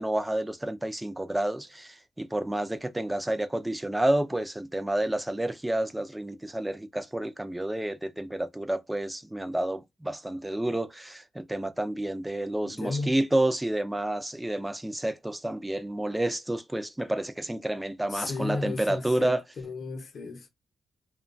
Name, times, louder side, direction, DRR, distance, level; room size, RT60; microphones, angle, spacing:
voice 1, 0.0-19.4, right 1 dB, 10° right, 0.4 m, -29 dB
voice 2, 12.6-13.2 18.1-20.5, left 3 dB, 55° left, 0.8 m, -34 dB
2.8 x 2.2 x 2.5 m
cardioid pair, 110°, 0 cm